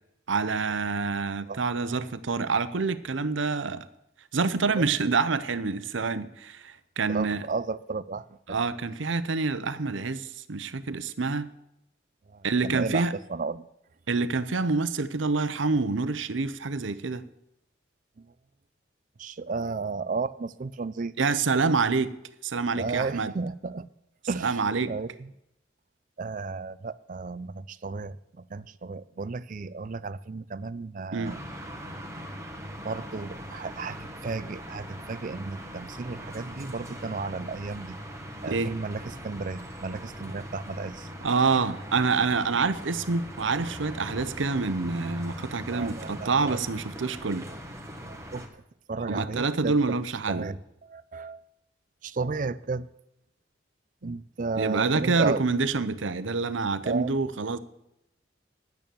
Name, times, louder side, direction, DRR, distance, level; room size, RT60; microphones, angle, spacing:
voice 1, 0.3-3.8 4.3-7.4 8.5-11.5 12.4-13.1 14.1-17.3 21.2-22.2 22.4-23.3 24.4-25.0 31.1-31.3 38.5-38.7 41.2-47.5 49.1-50.5 54.0-54.1 54.6-57.6, right 4 dB, 90° right, 0.8 m, -27 dB
voice 2, 7.1-8.6 12.3-13.6 18.2-18.3 19.2-21.1 22.7-23.9 24.3-25.3 26.2-31.4 32.8-34.0 34.2-38.0 38.4-41.1 45.7-46.6 48.1-48.6 48.9-50.0 50.3-51.4 52.0-52.9 54.0-55.4 56.8-57.1, right 4 dB, 45° right, 0.4 m, -33 dB
sound 1, 31.2-48.5, equal, 15° right, 1.4 m, -41 dB
10.5 x 9.2 x 7.0 m
head